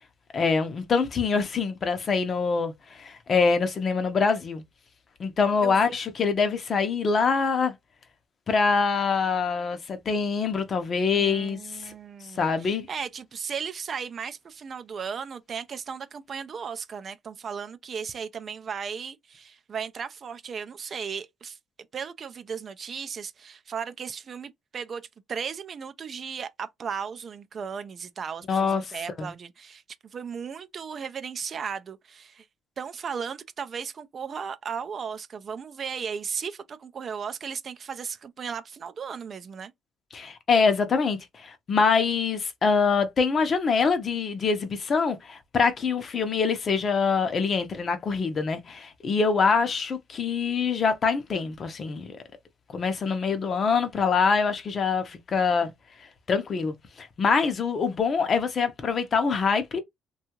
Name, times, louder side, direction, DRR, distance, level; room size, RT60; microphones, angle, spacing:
voice 1, 0.3-4.6 5.2-7.7 8.5-11.9 12.4-12.9 28.5-28.8 29.2-29.3 40.1-52.2 52.7-55.7 56.3-59.8, left 5 dB, 45° left, 0.6 m, -24 dB
voice 2, 5.6-5.9 11.1-21.6 21.9-25.0 25.3-32.5 32.8-39.7, right 6 dB, 45° right, 0.4 m, -36 dB
2.7 x 2.3 x 2.8 m
cardioid pair, 95°, 0 cm